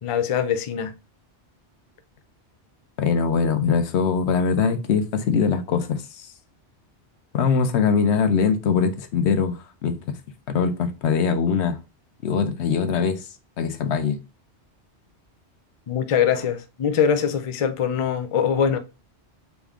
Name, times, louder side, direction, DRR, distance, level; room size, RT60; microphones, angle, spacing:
voice 1, 0.0-0.9 15.9-18.8, left 8 dB, 60° left, 0.3 m, -22 dB
voice 2, 3.0-6.3 7.3-10.1 10.5-11.8 12.2-13.3 13.6-14.2, left 6 dB, 75° left, 0.9 m, -22 dB
4.1 x 3.5 x 3.6 m
omnidirectional pair, 1.2 m